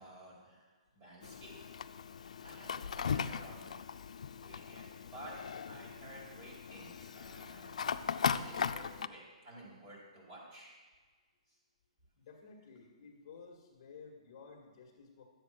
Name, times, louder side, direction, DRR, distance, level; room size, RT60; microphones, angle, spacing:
voice 1, 0.0-1.6 2.4-3.8 4.4-7.8 8.3-10.8 11.5-11.6, right 1 dB, 25° right, -5 dB, 4.5 m, -53 dB
Fire, 1.2-9.1, left 7 dB, 75° left, 0.6 m, -38 dB
voice 2, 12.2-15.2, left 5 dB, 35° left, 0 dB, 1.7 m, -54 dB
12.0 x 7.8 x 6.3 m, 1.4 s
hypercardioid pair, 175°, 4 cm